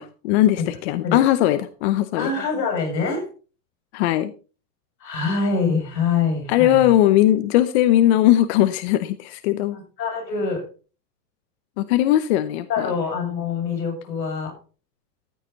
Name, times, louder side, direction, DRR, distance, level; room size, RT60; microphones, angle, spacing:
voice 1, 0.0-2.3 3.9-4.3 6.5-9.8 11.8-12.9, left 13 dB, 40° left, 12 dB, 0.8 m, -19 dB
voice 2, 2.2-3.3 5.0-6.8 9.7-10.7 12.7-14.5, left 5 dB, 80° left, 4 dB, 8.0 m, -25 dB
14.0 x 8.9 x 4.0 m, 0.35 s
supercardioid pair, 155°, 49 cm